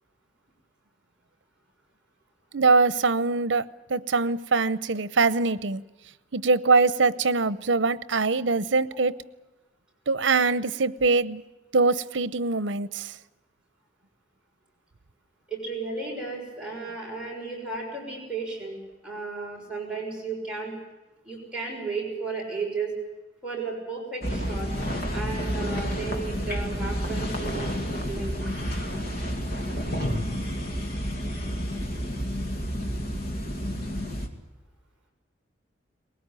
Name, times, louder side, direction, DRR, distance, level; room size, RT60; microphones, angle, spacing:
voice 1, 2.5-3.6 3.9-5.8 6.3-9.1 10.1-11.4 11.7-13.2, right 3 dB, 80° right, 16 dB, 0.8 m, -23 dB
voice 2, 15.5-18.8 19.0-20.7 21.2-22.9 23.4-24.7 25.1-28.4, right 4 dB, 5° right, -4 dB, 6.5 m, -34 dB
sound 1, 24.2-34.3, equal, 55° left, 2.5 m, -30 dB
20.5 x 18.5 x 9.0 m, 1.1 s
head